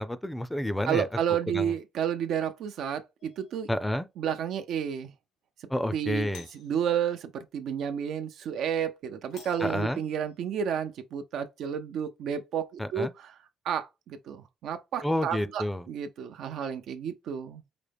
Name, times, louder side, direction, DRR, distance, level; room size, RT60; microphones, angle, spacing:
voice 1, 0.0-1.1 1.5-1.7 3.7-4.1 5.7-6.5 9.6-10.0 12.8-13.1 15.0-15.8, left 1 dB, 5° left, 0.5 m, -29 dB
voice 2, 0.9-3.7 4.2-5.1 5.9-13.3 13.6-17.6, right 8 dB, 80° right, 0.6 m, -31 dB
Doorbell, 3.2-3.7 6.2-6.8 9.3-10.5, left 6 dB, 85° left, 1.7 m, -52 dB
5.0 x 2.1 x 3.4 m
cardioid pair, 90°, 0 cm